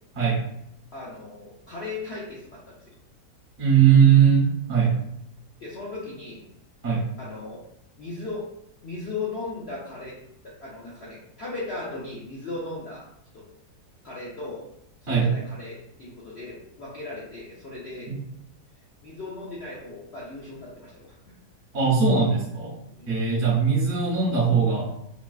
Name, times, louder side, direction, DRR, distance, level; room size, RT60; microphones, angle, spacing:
voice 1, 0.9-3.0 5.6-6.5 7.2-7.6 8.0-8.5 8.8-10.2 10.4-13.0 13.3-13.4 14.0-14.7 15.0-18.1 19.0-21.4 22.9-23.2, left 3 dB, 60° left, -6 dB, 0.7 m, -37 dB
voice 2, 3.6-4.9 6.8-7.0 15.1-15.3 18.1-18.2 21.7-22.7 23.1-24.9, right 7 dB, 50° right, -4 dB, 0.9 m, -20 dB
3.9 x 2.3 x 2.3 m, 0.77 s
omnidirectional pair, 1.8 m